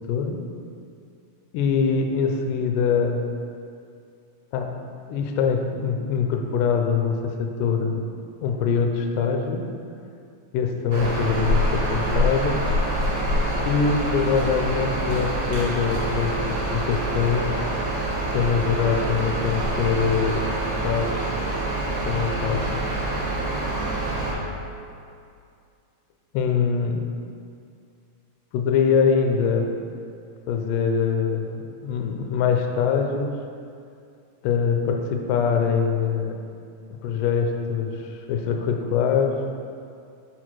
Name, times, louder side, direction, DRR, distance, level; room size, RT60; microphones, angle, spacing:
voice 1, 0.1-0.4 1.5-3.2 4.5-4.7 5.1-8.1 8.4-9.7 10.5-12.6 13.6-17.5 18.3-20.5 20.8-21.3 22.1-22.8 26.3-27.0 28.5-29.7 30.5-33.4 34.4-36.4 37.0-39.3, left 6 dB, 80° left, 3 dB, 2.1 m, -23 dB
sound 1, 10.9-24.3, right 1 dB, 65° right, 2.3 m, -26 dB
6.4 x 4.6 x 4.4 m, 2.4 s
omnidirectional pair, 3.9 m